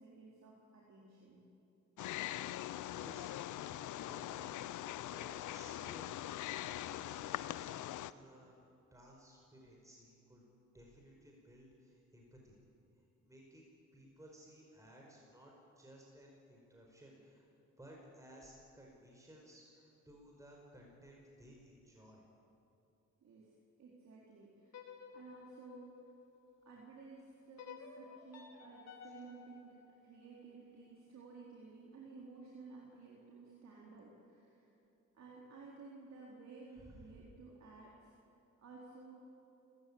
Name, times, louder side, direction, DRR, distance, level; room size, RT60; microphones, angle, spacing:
voice 1, 0.0-1.4 23.2-23.5 23.8-25.9 26.6-34.7 35.1-38.1 38.6-39.2, right 4 dB, 65° right, -3 dB, 4.2 m, -55 dB
Wild animals, 2.0-8.1, left 13 dB, 80° left, 0.7 m, -42 dB
voice 2, 2.9-3.4 4.0-4.5 4.8-6.2 6.9-8.6 8.9-10.5 10.7-12.6 13.2-13.6 13.9-17.4 17.8-22.2 36.8-37.1, right 1 dB, 10° right, -1 dB, 5.1 m, -58 dB
sound 1, 24.7-26.8 27.6-30.7, left 7 dB, 60° left, 4.3 m, -55 dB
29.5 x 15.5 x 8.8 m, 2.7 s
cardioid pair, 90°, 30 cm